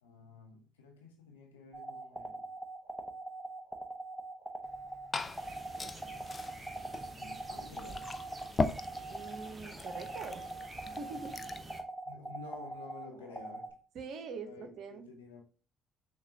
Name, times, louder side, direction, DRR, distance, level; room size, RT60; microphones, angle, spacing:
voice 1, 0.0-2.5 7.1-8.1 12.1-13.7 14.5-15.4, left 4 dB, 85° left, 0.6 m, -51 dB
sound 1, 1.7-13.7, right 2 dB, 5° left, 0.8 m, -42 dB
Glass / Fill (with liquid), 4.6-11.7, left 3 dB, 35° left, 0.4 m, -40 dB
sound 2, 5.2-11.8, right 2 dB, 30° right, 0.8 m, -50 dB
voice 2, 9.1-10.5 10.9-11.4 13.9-15.1, right 4 dB, 60° right, 0.7 m, -44 dB
6.0 x 2.3 x 2.7 m
hypercardioid pair, 45°, 0 cm